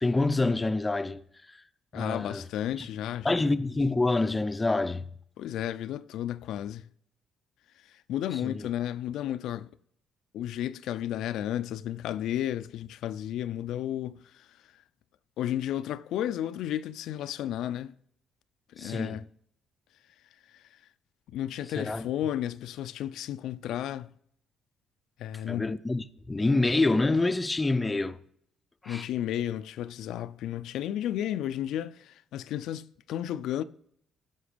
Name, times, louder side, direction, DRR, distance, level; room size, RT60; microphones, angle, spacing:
voice 1, 0.0-1.2 1.5-1.6 1.9-2.5 2.8-2.9 3.2-5.0 8.4-8.7 18.8-19.3 21.8-22.1 25.5-28.2 28.8-29.1, left 2 dB, 15° left, 0.4 m, -27 dB
voice 2, 1.9-3.3 5.4-6.9 7.9-9.7 10.3-14.5 15.4-17.9 18.7-19.2 20.5-20.6 21.3-24.1 25.2-25.7 28.9-33.6, left 11 dB, 80° left, 0.4 m, -33 dB
15.0 x 6.0 x 5.0 m
cardioid pair, 130°, 0 cm